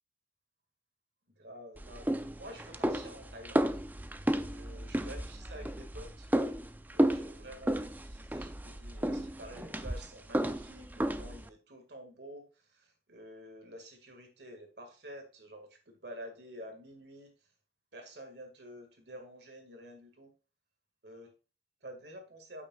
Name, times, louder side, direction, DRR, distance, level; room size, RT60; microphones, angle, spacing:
voice 1, 1.4-2.1 2.4-3.7 4.5-6.3 6.9-17.5 17.9-20.3 21.0-21.3 21.8-22.7, equal, 65° right, 2.0 m, -49 dB
sound 1, 1.8-11.5, right 1 dB, 10° right, 0.4 m, -33 dB
8.9 x 8.6 x 2.4 m
head